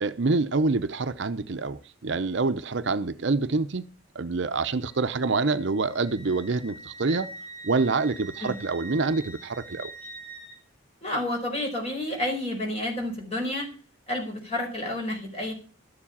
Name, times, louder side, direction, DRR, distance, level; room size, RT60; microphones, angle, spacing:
voice 1, 0.0-7.3 7.6-9.9, right 3 dB, 60° right, 0.6 m, -26 dB
Wind instrument woodwind instrument, 4.8-10.6, right 2 dB, 70° left, 4.6 m, -44 dB
voice 2, 11.0-13.7 14.1-15.5, left 1 dB, 30° left, 4.5 m, -30 dB
13.0 x 7.3 x 7.3 m
head